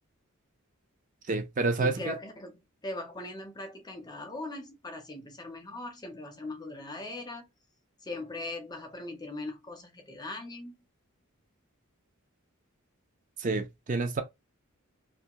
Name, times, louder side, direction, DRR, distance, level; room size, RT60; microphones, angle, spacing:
voice 1, 1.3-2.1 13.4-14.2, right 3 dB, 35° right, 0.4 m, -29 dB
voice 2, 1.8-7.4 8.0-10.7, left 2 dB, 20° left, 0.5 m, -40 dB
2.5 x 2.3 x 2.8 m
head